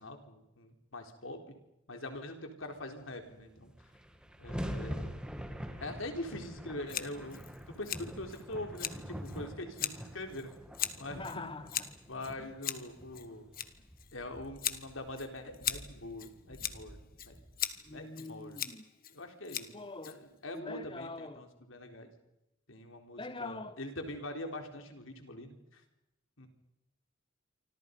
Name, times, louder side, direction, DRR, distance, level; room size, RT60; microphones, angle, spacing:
voice 1, 0.0-1.5 1.9-3.7 4.4-5.1 5.8-10.5 11.0-11.4 12.1-13.5 14.1-17.0 17.2-17.4 17.9-18.6 19.1-19.7 20.0-22.1 22.7-25.8 26.4-26.5, left 1 dB, 75° left, 4.0 m, -43 dB
sound 1, 3.3-3.4 3.6-17.9, equal, 5° right, 2.3 m, -45 dB
Scissors, 6.9-20.6, left 10 dB, 45° left, 1.5 m, -41 dB
voice 2, 11.2-11.9 12.4-12.5 17.8-18.8 19.7-20.2 20.5-21.5 23.2-23.8, left 3 dB, 25° left, 1.3 m, -43 dB
28.5 x 25.5 x 5.4 m
head